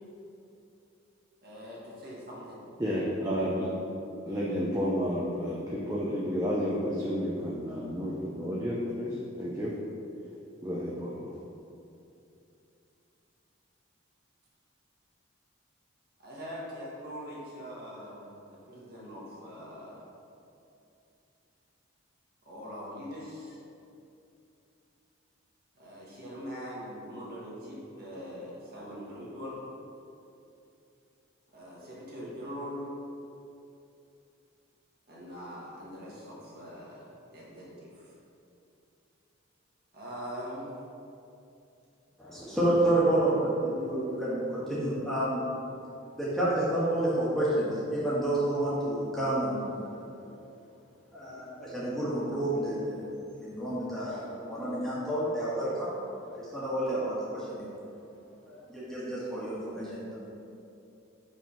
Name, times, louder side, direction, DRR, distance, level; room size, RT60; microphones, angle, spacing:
voice 1, 1.4-2.6 16.2-20.0 22.5-23.6 25.8-29.6 31.5-32.9 35.1-38.1 39.9-40.7, equal, 50° right, -6 dB, 1.4 m, -42 dB
voice 2, 2.8-3.7 4.3-9.7 10.6-11.3, equal, 15° right, -6 dB, 0.6 m, -31 dB
voice 3, 42.2-45.4 46.1-50.3 51.1-57.7 58.5-60.2, right 1 dB, ahead, -10 dB, 1.4 m, -30 dB
5.2 x 3.5 x 5.5 m, 2.7 s
head